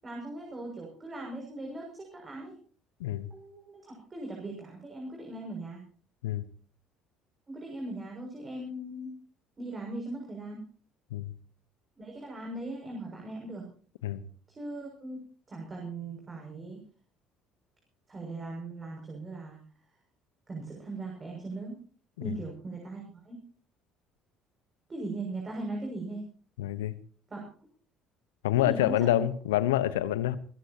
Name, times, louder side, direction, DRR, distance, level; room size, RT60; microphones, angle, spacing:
voice 1, 0.0-2.5 3.3-5.8 7.5-9.1 9.6-10.6 12.0-13.7 14.6-15.2 15.5-16.8 18.1-19.6 20.5-21.8 22.2-23.4 24.9-26.2 27.3-27.5 28.5-29.2, right 2 dB, 30° right, 0 dB, 6.5 m, -39 dB
voice 2, 26.6-26.9 28.4-30.4, left 13 dB, 80° left, 16 dB, 1.0 m, -27 dB
27.5 x 14.5 x 2.9 m, 0.42 s
hypercardioid pair, 55°, 0 cm